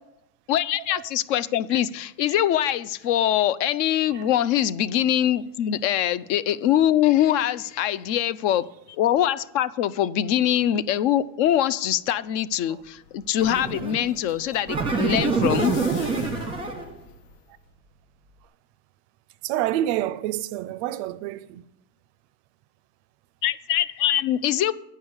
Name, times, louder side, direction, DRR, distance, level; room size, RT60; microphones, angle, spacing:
voice 1, 0.5-15.7 23.4-24.7, left 11 dB, 50° left, 0.5 m, -23 dB
sound 1, 12.6-17.7, left 6 dB, 70° left, 1.1 m, -42 dB
sound 2, 13.4-14.1 14.7-16.9, right 4 dB, 10° right, 1.1 m, -26 dB
voice 2, 19.4-21.6, right 13 dB, 50° right, 0.4 m, -28 dB
8.5 x 5.6 x 8.0 m
supercardioid pair, 125°, 48 cm